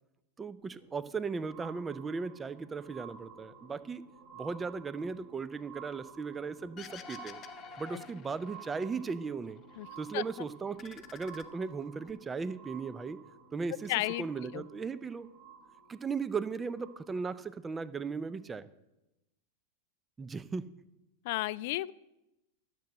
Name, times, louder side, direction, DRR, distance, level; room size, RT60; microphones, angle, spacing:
voice 1, 0.4-4.0 4.3-7.4 7.8-9.6 10.0-13.2 13.5-13.9 14.2-15.3 15.9-18.7 20.2-20.7, right 5 dB, 15° right, 16 dB, 0.5 m, -37 dB
sound 1, 0.6-17.5 18.2-18.3, right 6 dB, 45° right, 2.8 m, -53 dB
sound 2, 6.8-9.1 9.4-10.3 10.6-12.1, left 7 dB, 30° left, 0.8 m, -50 dB
voice 2, 13.9-14.6 21.2-21.9, left 18 dB, 50° left, 20 dB, 0.3 m, -33 dB
13.0 x 7.7 x 6.3 m, 0.95 s
figure-of-eight pair, 90°, 0 cm